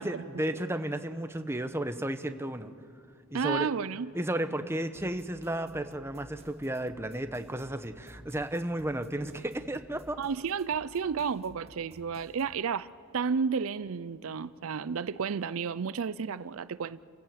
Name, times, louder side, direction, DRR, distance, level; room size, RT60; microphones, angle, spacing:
voice 1, 0.0-2.7 3.3-3.7 4.1-10.2, right 1 dB, 10° right, 0.9 m, -33 dB
voice 2, 3.3-4.1 10.2-12.9 13.1-17.0, right 6 dB, 70° right, 0.5 m, -32 dB
sound 1, 4.9-12.6, right 1 dB, 30° right, 1.4 m, -55 dB
29.5 x 15.5 x 8.6 m
head